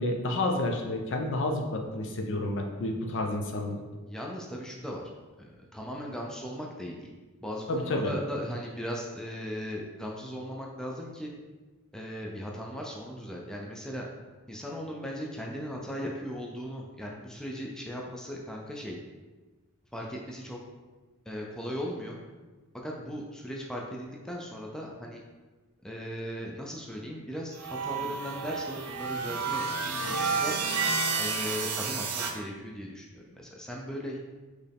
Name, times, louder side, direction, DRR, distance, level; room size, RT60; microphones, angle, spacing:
voice 1, 0.0-3.8 7.7-8.1, left 2 dB, 55° left, 2 dB, 0.6 m, -30 dB
voice 2, 4.1-5.1 5.4-7.1 7.4-11.3 11.9-14.0 14.5-19.0 19.9-20.6 21.3-22.2 22.7-25.2 25.8-29.7 30.0-30.6 31.2-34.2, equal, 5° left, -2 dB, 0.4 m, -38 dB
sound 1, 27.6-32.3, right 4 dB, 80° right, 0.6 m, -30 dB
4.5 x 3.1 x 3.4 m, 1.3 s
head